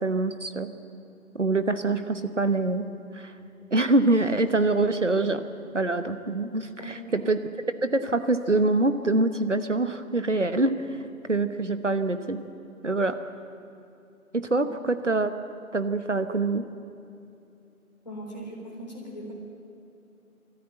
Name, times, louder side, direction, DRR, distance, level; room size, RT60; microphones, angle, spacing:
voice 1, 0.0-0.7 1.3-2.9 3.1-3.3 3.7-5.4 5.7-7.4 7.8-10.7 11.3-12.4 12.8-13.2 14.3-15.3 15.7-16.6, right 2 dB, 55° right, 10 dB, 1.2 m, -25 dB
voice 2, 6.8-7.3 18.0-19.3, equal, 30° left, -4 dB, 3.9 m, -39 dB
21.5 x 14.0 x 9.1 m, 2.6 s
figure-of-eight pair, 175°, 44 cm